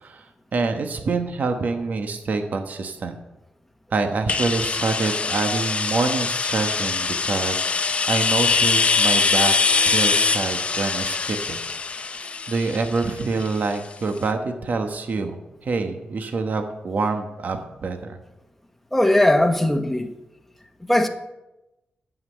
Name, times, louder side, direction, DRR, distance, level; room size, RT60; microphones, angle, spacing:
voice 1, 0.5-3.1 3.9-9.5 9.8-11.6 12.1-12.2 12.5-18.2, right 4 dB, 55° right, 1.1 m, -26 dB
sound 1, 4.3-13.9, left 4 dB, 40° left, 0.7 m, -23 dB
voice 2, 18.9-20.1 20.8-21.1, left 1 dB, 5° left, 1.2 m, -19 dB
9.5 x 7.4 x 8.7 m
wide cardioid pair, 115°, 3 cm